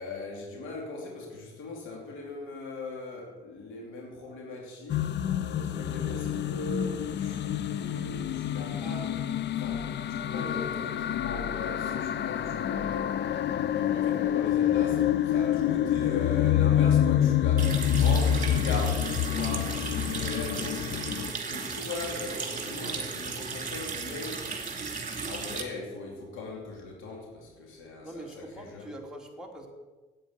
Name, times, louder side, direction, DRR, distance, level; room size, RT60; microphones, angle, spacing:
voice 1, 0.0-5.1 5.5-9.2 9.5-13.5 13.7-24.4 25.2-28.9, left 3 dB, 85° left, 0 dB, 2.7 m, -39 dB
sound 1, 4.9-21.3, left 10 dB, 60° left, 0.6 m, -27 dB
voice 2, 11.9-12.2 28.0-29.7, right 1 dB, 5° right, -1 dB, 2.9 m, -44 dB
Water tap faucet, 17.6-25.6, right 5 dB, 40° right, 2.5 m, -35 dB
10.0 x 8.7 x 8.3 m, 1.2 s
cardioid pair, 90°, 20 cm